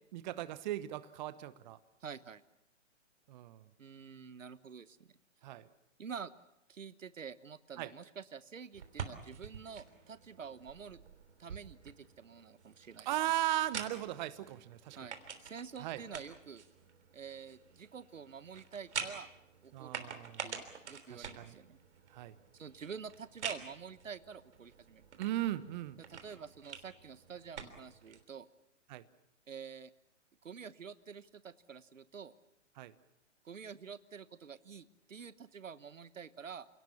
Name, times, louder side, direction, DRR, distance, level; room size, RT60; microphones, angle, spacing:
voice 1, 0.1-1.8 3.3-3.7 5.4-5.6 7.8-7.9 13.0-15.0 15.8-16.0 19.7-20.5 21.1-21.6 22.1-22.3 25.2-26.0 28.9-29.0 32.8-32.9, right 14 dB, 35° right, 15 dB, 1.1 m, -37 dB
voice 2, 2.0-2.4 3.8-5.1 6.0-6.3 6.7-11.0 11.4-13.1 15.0-16.6 17.1-19.3 19.6-20.0 20.4-21.8 22.5-25.1 26.0-28.5 29.5-29.9 30.4-32.3 33.4-36.7, right 6 dB, 85° right, 15 dB, 1.2 m, -48 dB
sound 1, 8.7-28.2, right 6 dB, 65° right, 3.4 m, -47 dB
28.5 x 18.0 x 7.2 m, 0.84 s
hypercardioid pair, 130°, 37 cm